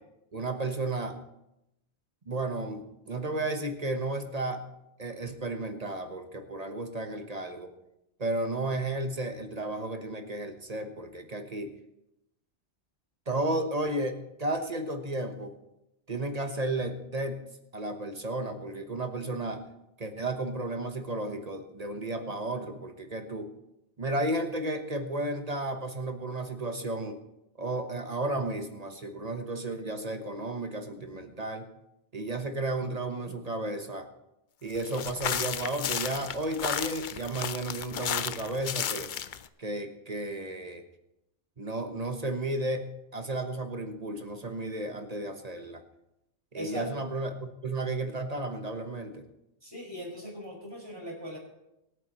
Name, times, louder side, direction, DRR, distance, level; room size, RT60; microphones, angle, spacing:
voice 1, 0.3-1.2 2.3-4.6 5.0-7.7 8.2-11.7 13.3-15.5 16.1-17.4 17.7-19.6 20.0-23.5 24.0-27.2 27.6-31.7 32.1-34.1 34.6-39.1 39.6-40.8 41.6-45.8 46.5-49.2, right 2 dB, 35° right, 6 dB, 1.1 m, -33 dB
sound 1, 34.8-39.5, left 9 dB, 55° left, 0.6 m, -33 dB
voice 2, 46.5-46.9 49.6-51.4, equal, 20° right, -3 dB, 5.5 m, -39 dB
24.0 x 9.3 x 3.0 m, 0.87 s
omnidirectional pair, 1.1 m